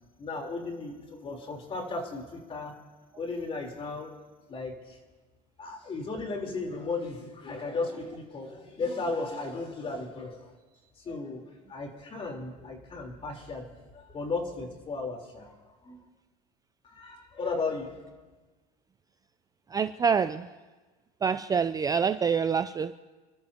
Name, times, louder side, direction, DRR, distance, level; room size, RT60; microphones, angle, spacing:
voice 1, 0.2-2.8 3.2-4.2 4.5-5.0 5.6-10.5 11.0-13.7 13.9-16.0 16.8-18.1, left 3 dB, 30° left, 1 dB, 3.8 m, -35 dB
voice 2, 19.7-20.5 21.2-23.0, right 6 dB, 20° right, 11 dB, 0.4 m, -26 dB
29.5 x 13.5 x 2.9 m, 1.3 s
supercardioid pair, 110°, 20 cm